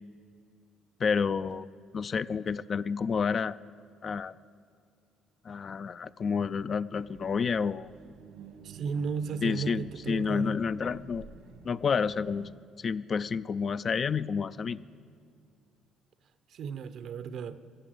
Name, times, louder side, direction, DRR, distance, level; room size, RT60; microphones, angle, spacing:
voice 1, 1.0-1.7 1.9-3.6 4.0-4.4 5.4-7.9 9.4-11.3 11.6-12.5 12.8-14.8, left 6 dB, 45° left, 15 dB, 0.3 m, -29 dB
sound 1, 7.0-12.5, right 6 dB, 80° right, 1.3 m, -49 dB
voice 2, 8.6-10.6 16.5-17.6, right 6 dB, 65° right, 12 dB, 0.7 m, -35 dB
15.0 x 8.0 x 7.8 m, 2.2 s
cardioid pair, 90°, 0 cm